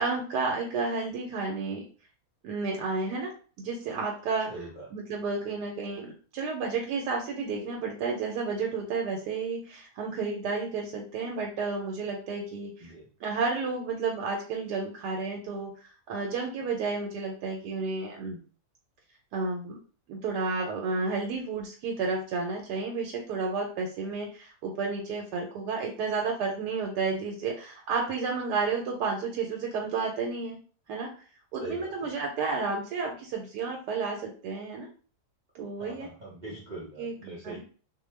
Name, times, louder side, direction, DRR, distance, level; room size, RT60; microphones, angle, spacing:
voice 1, 0.0-1.8 2.4-4.5 4.9-12.9 13.2-15.7 16.1-18.4 19.3-19.8 20.1-30.6 30.9-31.1 31.5-34.9 35.5-36.1 37.0-37.1 37.4-37.6, right 4 dB, 90° right, 0 dB, 1.2 m, -31 dB
voice 2, 4.5-4.9 12.8-13.1 31.6-32.1 35.8-37.6, right 2 dB, 55° right, -5 dB, 0.5 m, -41 dB
2.5 x 2.2 x 3.1 m, 0.39 s
omnidirectional pair, 1.7 m